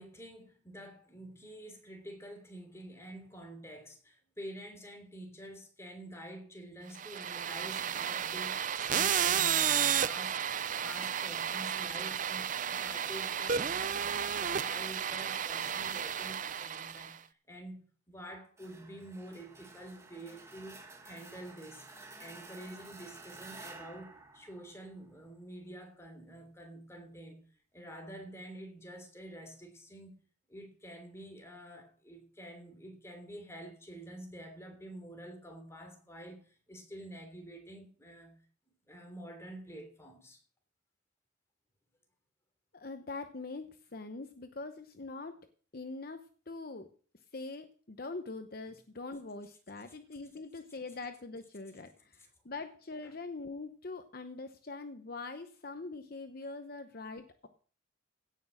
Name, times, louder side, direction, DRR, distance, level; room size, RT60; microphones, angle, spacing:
voice 1, 0.0-9.7 10.0-10.4 10.8-27.4 27.7-30.2 30.5-38.3 38.9-40.4 48.6-48.8 53.0-53.1, right 1 dB, 15° left, 3.1 m, -48 dB
sound 1, 7.0-17.2, right 8 dB, 45° right, 0.5 m, -32 dB
sound 2, 18.6-25.3, right 3 dB, 15° right, 1.7 m, -52 dB
voice 2, 42.7-45.4 45.7-46.9 47.3-57.5, left 3 dB, 50° left, 0.8 m, -43 dB
17.0 x 6.4 x 6.3 m
head